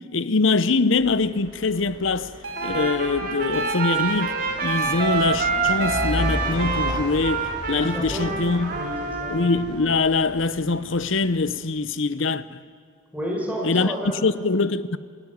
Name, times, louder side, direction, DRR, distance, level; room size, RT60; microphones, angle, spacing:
voice 1, 0.0-2.3 2.6-8.7 9.3-12.6 13.6-15.0, left 3 dB, 70° left, 0.8 m, -23 dB
sound 1, 1.0-11.6, right 1 dB, 25° right, 5.2 m, -35 dB
sound 2, 2.4-6.3, equal, 75° right, 4.5 m, -35 dB
Trumpet, 2.5-9.6, right 4 dB, 45° right, 3.2 m, -27 dB
voice 2, 7.8-8.4 8.7-9.4 13.1-14.2, equal, 5° right, 5.0 m, -31 dB
27.0 x 16.5 x 9.5 m
head